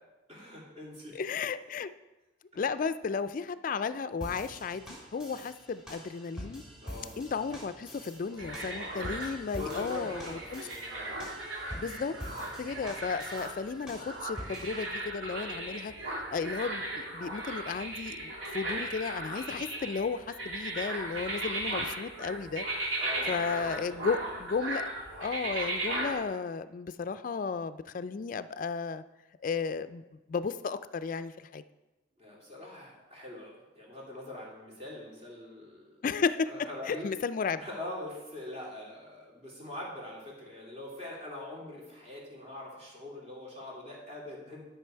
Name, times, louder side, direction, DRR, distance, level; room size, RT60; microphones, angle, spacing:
voice 1, 0.3-1.3 2.5-2.6 6.8-7.3 8.3-9.1 9.5-11.2 23.0-24.5 32.2-36.0 36.4-37.1 37.6-44.7, left 1 dB, 35° right, -4 dB, 2.8 m, -43 dB
voice 2, 1.1-1.9 2.6-6.6 7.2-10.6 11.7-12.1 12.6-15.9 16.3-22.7 23.3-24.9 25.2-29.0 29.4-30.0 30.3-31.6 36.0-36.5 36.9-37.6, left 5 dB, 45° left, 12 dB, 0.3 m, -34 dB
sound 1, 4.2-14.9, equal, 5° right, 2.9 m, -46 dB
sound 2, 8.4-26.1, right 2 dB, 75° right, 2.2 m, -37 dB
11.5 x 5.9 x 4.5 m, 1.1 s
head